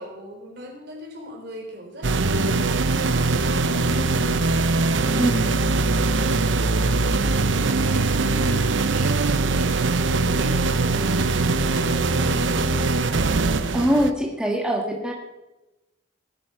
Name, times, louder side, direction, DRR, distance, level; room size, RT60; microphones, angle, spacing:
voice 1, 0.0-4.6 5.4-5.6 6.1-13.9, equal, 60° right, 1 dB, 4.3 m, -39 dB
sound 1, 2.0-14.1, right 3 dB, 75° right, 0.8 m, -22 dB
voice 2, 5.1-5.5 13.7-15.1, equal, 5° right, -1 dB, 1.7 m, -23 dB
19.5 x 9.0 x 5.7 m, 1.0 s
head